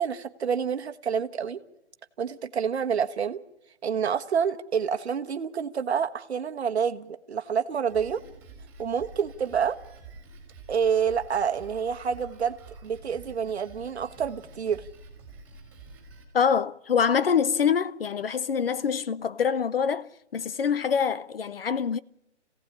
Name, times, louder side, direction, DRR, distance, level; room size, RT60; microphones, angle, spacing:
voice 1, 0.0-1.6 2.2-3.4 3.8-8.2 8.8-9.8 10.7-12.6 12.8-14.8, right 7 dB, 65° right, 1.3 m, -28 dB
Drum kit, 7.9-16.2, right 3 dB, 5° right, 3.7 m, -48 dB
voice 2, 16.3-22.0, left 7 dB, 55° left, 0.8 m, -25 dB
26.5 x 16.5 x 9.8 m
hypercardioid pair, 175°, 35 cm